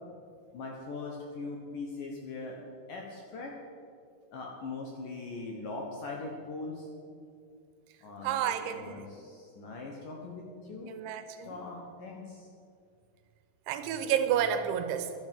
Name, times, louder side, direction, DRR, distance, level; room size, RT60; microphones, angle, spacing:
voice 1, 0.5-2.6 2.9-3.5 4.3-6.9 8.0-11.0 11.5-12.5, left 3 dB, 65° left, 0 dB, 2.2 m, -41 dB
voice 2, 8.2-9.1 10.9-11.6 13.7-15.1, right 9 dB, 85° right, 9 dB, 3.1 m, -30 dB
11.0 x 10.5 x 7.6 m, 2.4 s
omnidirectional pair, 5.4 m